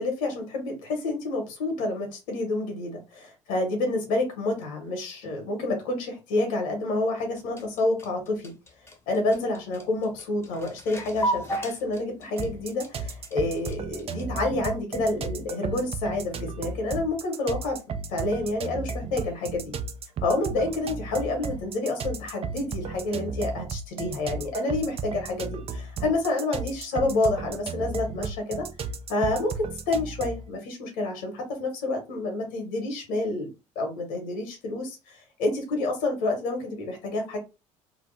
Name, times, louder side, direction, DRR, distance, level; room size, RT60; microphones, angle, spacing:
voice 1, 0.0-8.5 9.1-17.8 18.1-19.8 20.2-28.7 29.1-33.5 33.7-37.4, left 2 dB, 75° left, 3 dB, 1.1 m, -28 dB
sound 1, 7.2-14.5, right 1 dB, 15° left, 0.8 m, -35 dB
sound 2, 12.4-30.5, right 4 dB, 35° right, 0.4 m, -34 dB
2.8 x 2.0 x 3.1 m, 0.27 s
hypercardioid pair, 60°, 17 cm